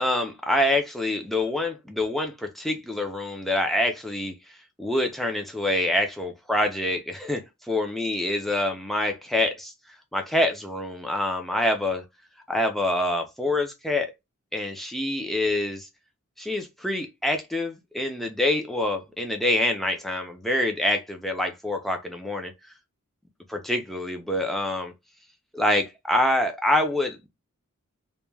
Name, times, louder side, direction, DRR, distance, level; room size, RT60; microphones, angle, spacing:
voice 1, 0.0-4.3 4.8-9.7 10.1-12.0 12.5-14.1 14.5-15.9 16.4-22.5 23.5-24.9 25.5-27.2, left 1 dB, ahead, 0.4 m, -26 dB
2.2 x 2.1 x 3.1 m
head